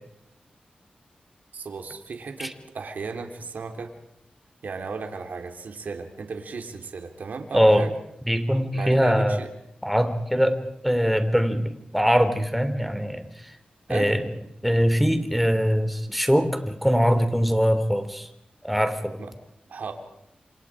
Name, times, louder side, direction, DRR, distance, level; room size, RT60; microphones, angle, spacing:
voice 1, 1.5-3.9 4.6-7.9 8.7-9.5 13.9-14.2 19.2-19.3 19.7-19.9, right 4 dB, 75° right, 5 dB, 3.3 m, -35 dB
voice 2, 7.5-7.8 8.3-9.4 9.8-13.3 13.9-14.2 14.6-18.3 18.6-19.2, equal, ahead, 9 dB, 3.3 m, -22 dB
29.0 x 26.5 x 5.0 m, 0.80 s
cardioid pair, 70°, 3 cm